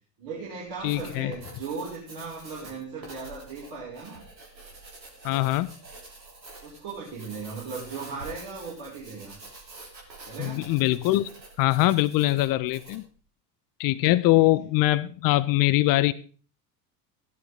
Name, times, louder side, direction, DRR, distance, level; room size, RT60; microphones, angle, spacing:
voice 1, 0.2-4.2 6.6-9.4 10.2-10.6, right 4 dB, 45° right, -5 dB, 5.5 m, -37 dB
Writing, 0.7-13.1, right 2 dB, 80° right, 3.4 m, -47 dB
voice 2, 0.8-1.3 5.2-5.7 10.4-11.3 11.6-13.0 13.8-16.1, left 17 dB, 40° left, 16 dB, 0.8 m, -22 dB
16.0 x 12.0 x 3.7 m, 0.39 s
figure-of-eight pair, 70°, 50 cm